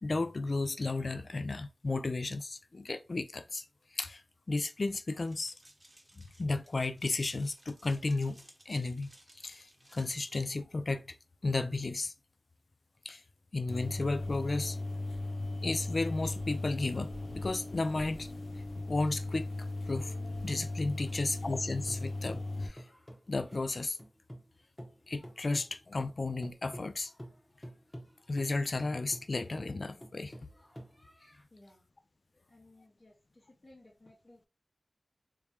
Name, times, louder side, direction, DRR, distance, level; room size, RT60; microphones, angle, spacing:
voice 1, 0.0-3.6 3.9-4.2 4.5-5.5 6.2-11.1 11.4-12.1 13.0-13.2 13.5-14.8 15.6-18.3 18.9-20.1 20.4-22.8 23.3-24.0 25.1-27.1 28.3-30.3, left 3 dB, 65° left, 0.4 m, -33 dB
sound 1, 5.2-10.5, right 1 dB, 30° right, 1.0 m, -60 dB
sound 2, 13.7-22.7, left 2 dB, 90° left, 0.8 m, -37 dB
sound 3, 21.3-24.5 24.8-31.4, equal, 20° left, 1.2 m, -49 dB
voice 2, 31.5-31.9 32.5-34.5, left 1 dB, 50° left, 1.5 m, -59 dB
3.5 x 3.2 x 2.8 m
wide cardioid pair, 45°, 0 cm